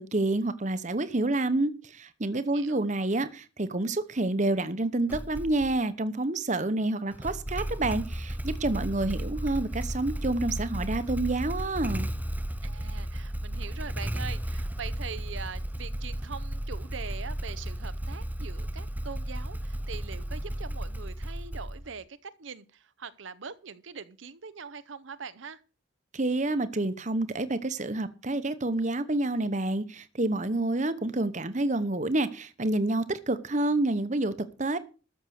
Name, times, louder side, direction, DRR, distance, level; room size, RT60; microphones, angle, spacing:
voice 1, 0.0-12.1 26.1-34.3 34.6-34.8, right 2 dB, 35° right, 1.0 m, -28 dB
voice 2, 2.5-2.9 12.6-25.6, right 5 dB, 75° right, 0.8 m, -42 dB
Motorcycle / Engine starting, 5.1-5.8 7.1-22.0, right 1 dB, 10° right, 0.6 m, -34 dB
13.5 x 6.6 x 6.5 m
head